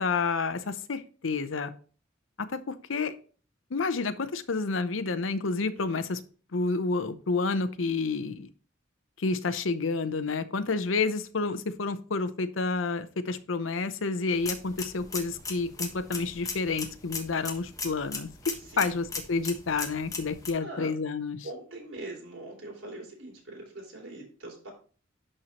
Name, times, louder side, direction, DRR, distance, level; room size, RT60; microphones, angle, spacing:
voice 1, 0.0-1.7 2.4-3.1 3.7-6.2 6.5-8.5 9.2-21.4, left 4 dB, 80° left, 11 dB, 0.7 m, -29 dB
sound 1, 14.3-20.5, left 4 dB, 20° left, 1.2 m, -38 dB
voice 2, 18.6-18.9 20.6-20.9 21.4-24.7, right 2 dB, 90° right, -3 dB, 3.5 m, -42 dB
11.5 x 4.4 x 3.0 m, 0.39 s
head